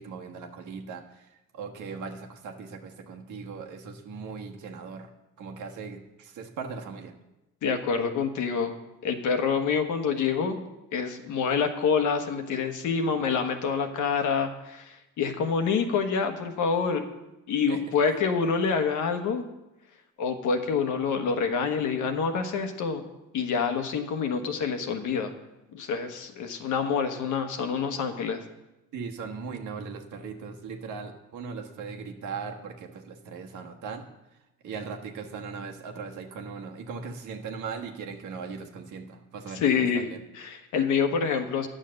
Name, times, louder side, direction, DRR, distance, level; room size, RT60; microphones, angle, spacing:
voice 1, 0.0-5.1 5.4-7.1 17.7-17.8 28.9-34.1 34.6-40.2, right 5 dB, 80° right, 2 dB, 1.4 m, -39 dB
voice 2, 7.6-8.7 9.0-10.6 10.9-17.1 17.5-19.4 20.2-23.0 23.3-25.3 25.7-28.4 39.5-40.1 40.3-41.7, left 6 dB, 85° left, 6 dB, 1.2 m, -27 dB
10.0 x 6.5 x 6.5 m, 0.97 s
cardioid pair, 90°, 30 cm